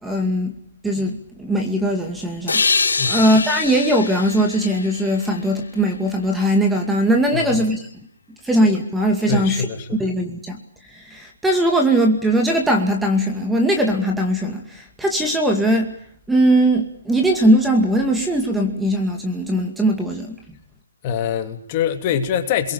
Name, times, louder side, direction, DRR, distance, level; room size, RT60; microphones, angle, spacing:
voice 1, 0.0-0.5 0.8-7.8 8.4-10.6 10.9-15.9 16.3-20.3, right 1 dB, 5° right, 3 dB, 2.4 m, -20 dB
sound 1, 2.5-6.0, left 4 dB, 90° left, 1.6 m, -24 dB
voice 2, 7.3-7.7 9.3-10.0 21.0-22.7, left 8 dB, 30° left, 6 dB, 3.0 m, -24 dB
29.0 x 22.5 x 7.2 m, 0.65 s
hypercardioid pair, 155°, 0 cm